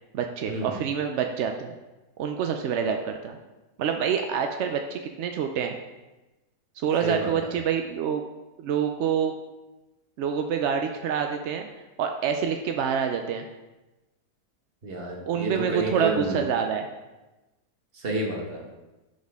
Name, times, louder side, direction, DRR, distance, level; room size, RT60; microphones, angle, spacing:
voice 1, 0.1-1.7 2.2-3.4 3.8-5.7 6.8-8.2 8.6-9.3 10.2-11.7 12.0-13.5 15.3-16.9, right 7 dB, 70° right, 5 dB, 0.6 m, -27 dB
voice 2, 7.0-7.5 14.8-16.4 17.9-18.6, right 2 dB, 40° right, 0 dB, 1.3 m, -30 dB
11.0 x 4.3 x 3.5 m, 1.1 s
omnidirectional pair, 1.7 m